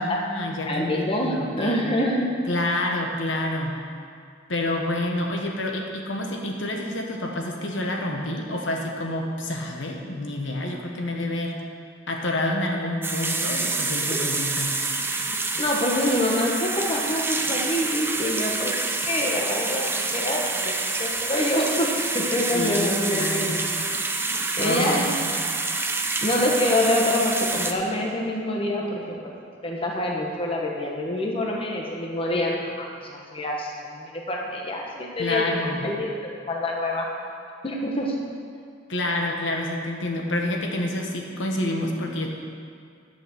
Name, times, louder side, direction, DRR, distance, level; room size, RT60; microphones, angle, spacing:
voice 1, 0.0-1.8 2.5-3.8 4.5-11.6 12.1-14.8 22.5-23.5 24.6-25.3 35.2-35.9 38.9-42.3, left 1 dB, 75° left, 1 dB, 1.3 m, -28 dB
voice 2, 0.7-2.3 15.6-18.7 19.0-23.7 24.6-25.1 26.2-29.2 29.6-35.6 35.8-36.1 36.5-37.1 37.6-38.1, left 1 dB, 30° left, -1 dB, 1.1 m, -26 dB
sound 1, 13.0-27.7, right 3 dB, 10° right, 0.6 m, -27 dB
11.0 x 5.9 x 6.9 m, 2.3 s
head